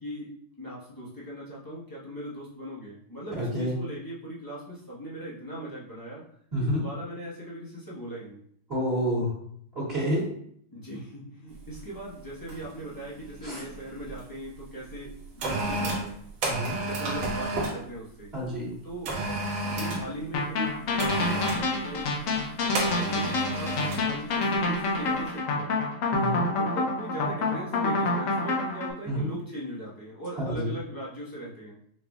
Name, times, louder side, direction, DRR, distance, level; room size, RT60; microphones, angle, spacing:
voice 1, 0.0-6.2 6.6-8.4 10.7-16.2 16.8-18.3 18.8-19.1 19.6-22.1 22.5-25.7 26.6-31.8, right 1 dB, 20° left, -8 dB, 0.5 m, -39 dB
voice 2, 3.4-3.7 6.5-6.8 8.7-9.3 9.7-10.2 13.4-13.6 16.5-16.8 18.3-18.7 26.1-26.5 29.1-29.3 30.4-30.7, equal, 30° right, -8 dB, 1.8 m, -28 dB
sound 1, 11.6-11.8 12.5-12.8 13.0-14.2 14.9-17.8 19.0-20.1 21.0-21.7 22.7-24.1 24.4-24.6, right 2 dB, 60° right, 1.4 m, -31 dB
sound 2, 20.3-28.9, left 2 dB, 75° left, 0.7 m, -27 dB
5.7 x 3.1 x 2.3 m, 0.65 s
omnidirectional pair, 2.3 m